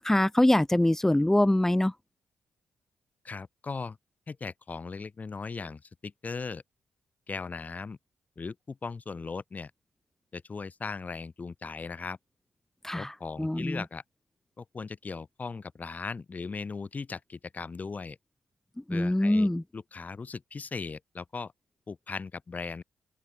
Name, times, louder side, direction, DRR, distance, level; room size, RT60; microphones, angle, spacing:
voice 1, 0.0-1.9 12.8-13.1 13.4-13.8 18.9-19.6, left 1 dB, 10° left, 2.0 m, -23 dB
voice 2, 3.2-4.0 4.3-6.6 7.3-8.0 8.4-9.7 10.3-12.2 12.9-14.0 14.6-18.2 18.9-21.5 21.9-22.8, left 4 dB, 40° left, 7.6 m, -38 dB
open air
cardioid pair, 70°, 4 cm